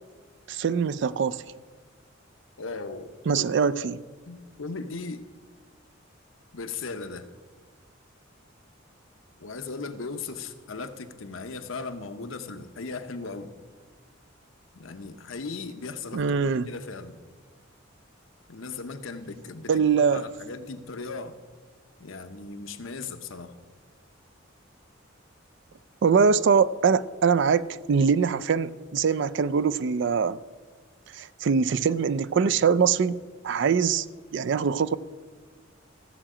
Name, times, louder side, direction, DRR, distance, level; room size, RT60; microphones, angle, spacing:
voice 1, 0.5-1.4 3.3-4.0 16.1-16.7 19.7-20.3 26.0-30.4 31.1-34.1 34.3-35.0, right 6 dB, 60° right, 0.4 m, -23 dB
voice 2, 2.6-3.9 4.3-5.3 6.5-7.3 9.4-13.5 14.7-17.2 18.5-21.4 22.0-23.5, left 4 dB, 80° left, 0.8 m, -37 dB
15.0 x 7.4 x 4.9 m
head